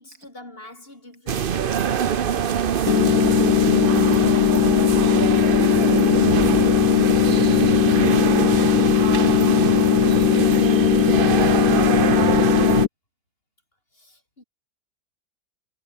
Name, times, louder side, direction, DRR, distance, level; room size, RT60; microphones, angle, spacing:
voice 1, 0.0-2.0 5.2-5.4 7.3-7.4 13.9-14.4, left 1 dB, 35° left, 4.9 m, -45 dB
sound 1, 1.3-12.9, right 8 dB, 45° right, 0.7 m, -23 dB
sound 2, 2.9-12.9, left 13 dB, 70° left, 1.1 m, -19 dB
voice 2, 5.4-7.7 10.0-10.5 10.8-11.3 11.6-12.4, right 3 dB, 70° right, 4.0 m, -48 dB
omnidirectional pair, 1.7 m